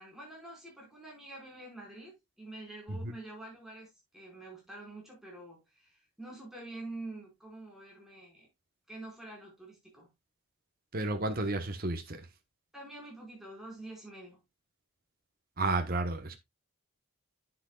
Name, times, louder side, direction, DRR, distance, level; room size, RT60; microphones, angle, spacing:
voice 1, 0.0-8.5 8.9-10.1 12.7-14.4, right 2 dB, ahead, 4.9 m, -47 dB
voice 2, 10.9-12.3 15.6-16.3, right 2 dB, 45° right, 1.1 m, -32 dB
10.0 x 7.9 x 2.3 m
head